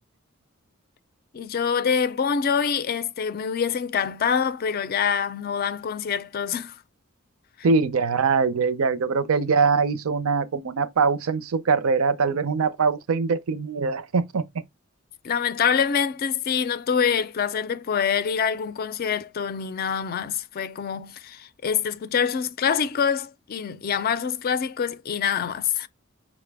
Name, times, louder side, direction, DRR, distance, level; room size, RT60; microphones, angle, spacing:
voice 1, 1.3-6.7 15.2-25.9, left 7 dB, 45° left, 0.4 m, -25 dB
voice 2, 7.6-14.4, right 5 dB, 80° right, 0.5 m, -22 dB
5.7 x 2.1 x 3.3 m
head